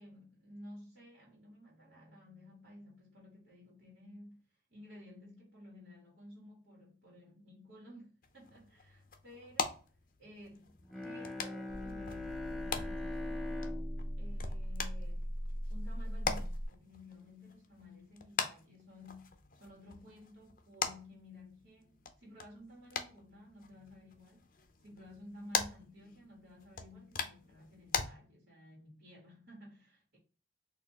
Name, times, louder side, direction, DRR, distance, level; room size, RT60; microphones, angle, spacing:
voice 1, 0.0-4.4 4.7-9.9 10.2-13.9 14.2-15.3 15.7-30.2, left 1 dB, 75° right, 1.8 m, -54 dB
sound 1, 8.2-28.1, left 5 dB, 50° left, 0.5 m, -42 dB
Bowed string instrument, 10.8-15.7, left 2 dB, ahead, 0.5 m, -43 dB
sound 2, 11.7-16.7, equal, 30° right, 1.1 m, -39 dB
4.2 x 2.7 x 2.8 m
head